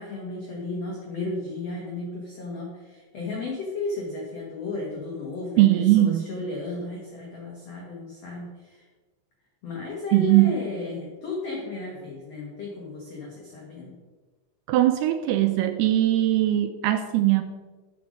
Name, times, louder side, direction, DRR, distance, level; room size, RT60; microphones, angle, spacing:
voice 1, 0.0-8.9 9.6-14.0, left 2 dB, 80° left, -2 dB, 1.4 m, -34 dB
voice 2, 5.6-6.2 10.1-10.6 14.7-17.4, right 14 dB, 85° right, 8 dB, 2.3 m, -20 dB
7.7 x 6.4 x 5.2 m, 1.3 s
omnidirectional pair, 4.9 m